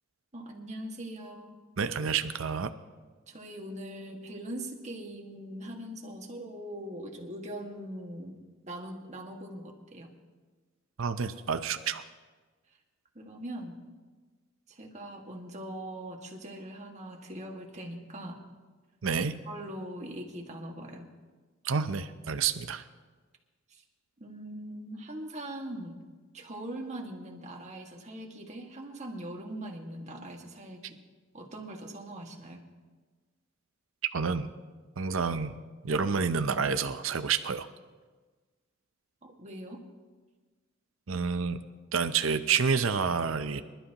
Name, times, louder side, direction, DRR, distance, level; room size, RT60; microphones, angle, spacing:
voice 1, 0.3-1.6 3.3-10.1 13.2-13.8 14.7-18.4 19.5-21.1 23.7-23.8 24.2-26.0 26.3-31.0 31.3-32.6 39.2-39.8, right 1 dB, 35° right, 0 dB, 1.9 m, -41 dB
voice 2, 1.8-2.7 11.0-12.0 19.0-19.3 21.6-22.8 34.1-34.5 35.0-35.5 35.8-37.7 41.1-41.6 41.9-43.6, right 5 dB, 75° right, 10 dB, 0.7 m, -29 dB
25.5 x 12.0 x 3.0 m, 1.4 s
head